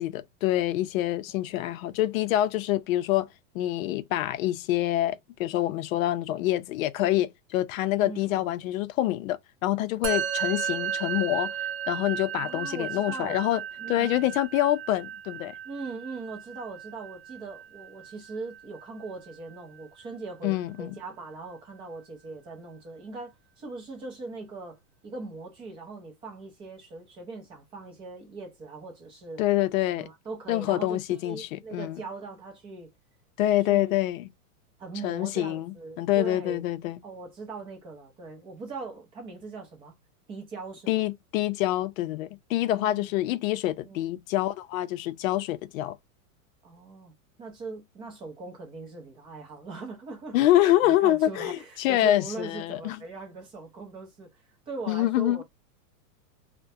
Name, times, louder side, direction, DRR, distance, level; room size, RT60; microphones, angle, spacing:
voice 1, 0.0-3.3 3.5-13.6 13.9-15.5 20.4-20.9 29.4-30.1 30.5-32.0 33.4-34.2 35.0-37.0 40.9-46.0 50.3-53.0 54.9-55.4, left 14 dB, 65° left, 0.5 m, -26 dB
voice 2, 8.0-8.5 12.4-13.4 13.8-14.3 15.6-29.4 30.0-32.9 33.7-34.0 34.8-36.6 37.0-40.0 40.3-40.9 42.7-43.1 43.8-44.1 46.6-47.1 47.4-55.4, right 3 dB, 15° right, 0.4 m, -40 dB
Musical instrument, 10.0-19.6, right 9 dB, 65° right, 0.7 m, -35 dB
2.3 x 2.1 x 2.6 m
supercardioid pair, 150°, 44 cm